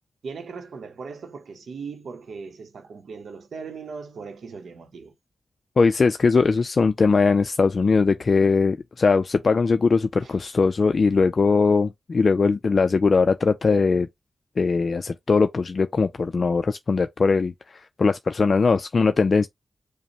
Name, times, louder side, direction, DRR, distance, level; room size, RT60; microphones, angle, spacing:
voice 1, 0.2-5.1 10.2-10.3, right 5 dB, 80° right, 0.7 m, -38 dB
voice 2, 5.8-14.1 14.6-19.5, left 4 dB, 50° left, 0.3 m, -20 dB
5.2 x 2.0 x 2.9 m
wide cardioid pair, 100°, 0 cm